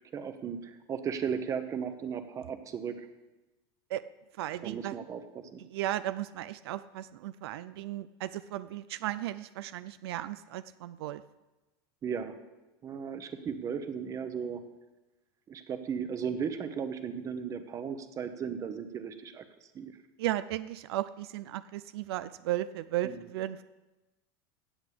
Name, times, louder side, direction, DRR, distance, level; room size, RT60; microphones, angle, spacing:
voice 1, 0.1-3.1 4.6-5.6 12.0-12.4 12.8-14.6 15.5-19.4 19.7-19.9 23.0-23.2, right 7 dB, 25° right, 9 dB, 1.0 m, -36 dB
voice 2, 4.4-5.0 5.6-11.2 20.2-23.6, right 14 dB, 85° right, 14 dB, 0.5 m, -35 dB
16.0 x 8.3 x 5.1 m, 1.1 s
supercardioid pair, 145°, 13 cm